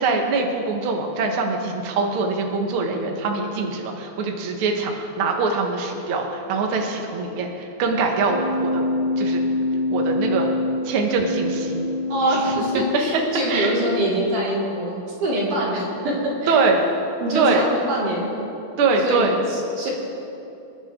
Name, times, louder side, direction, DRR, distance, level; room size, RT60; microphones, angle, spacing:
voice 1, 0.0-8.8 9.2-9.4 9.9-10.5 10.8-11.9 12.3-12.4 12.7-13.2 13.5-13.8 16.5-16.8 17.3-17.7 18.8-19.3, right 4 dB, 55° right, 2 dB, 1.8 m, -23 dB
Keyboard (musical), 8.2-14.2, left 2 dB, 65° left, 1.3 m, -26 dB
voice 2, 12.1-16.6 17.2-18.4 19.0-19.9, right 1 dB, 80° right, -5 dB, 4.6 m, -24 dB
26.0 x 10.0 x 3.7 m, 2.8 s
omnidirectional pair, 3.5 m